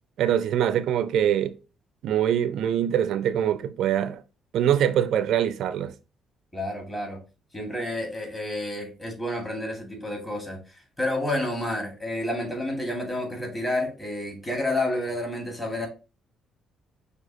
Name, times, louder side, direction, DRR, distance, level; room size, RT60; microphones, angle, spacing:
voice 1, 0.2-1.5 2.0-4.2 4.5-5.9, right 10 dB, 70° right, 0.4 m, -23 dB
voice 2, 6.5-7.2 7.5-15.9, left 1 dB, 15° left, 1.9 m, -30 dB
6.2 x 2.7 x 2.7 m
cardioid pair, 105°, 0 cm